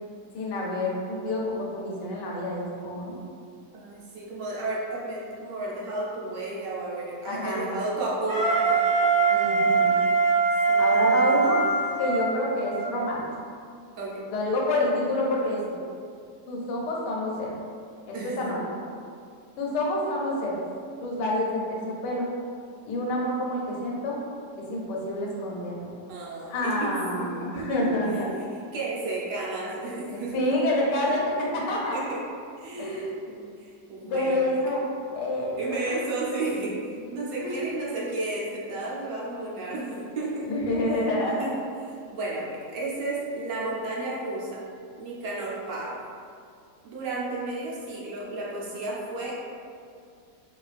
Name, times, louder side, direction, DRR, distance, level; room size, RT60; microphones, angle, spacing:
voice 1, 0.3-3.1 7.3-7.7 9.3-9.9 10.8-11.7 12.0-13.2 14.3-15.8 16.5-17.5 18.1-18.6 19.6-20.6 21.0-22.3 22.8-24.2 24.6-25.9 26.5-28.3 30.1-32.0 32.8-33.1 34.0-34.8 35.1-35.6 35.9-36.0 37.4-37.6 40.4-41.4, left 1 dB, 80° left, -3 dB, 1.3 m, -28 dB
voice 2, 3.7-8.8 10.7-11.5 14.0-14.3 18.1-18.5 26.1-27.8 28.7-30.5 31.9-32.2 32.6-33.5 33.9-34.6 35.6-40.5 41.4-41.5 41.8-44.6 45.0-46.0 46.8-49.5, right 2 dB, 85° right, -5 dB, 1.4 m, -33 dB
Wind instrument woodwind instrument, 8.3-13.0, right 4 dB, 45° right, 0.8 m, -22 dB
4.0 x 2.5 x 2.4 m, 2.3 s
omnidirectional pair, 1.8 m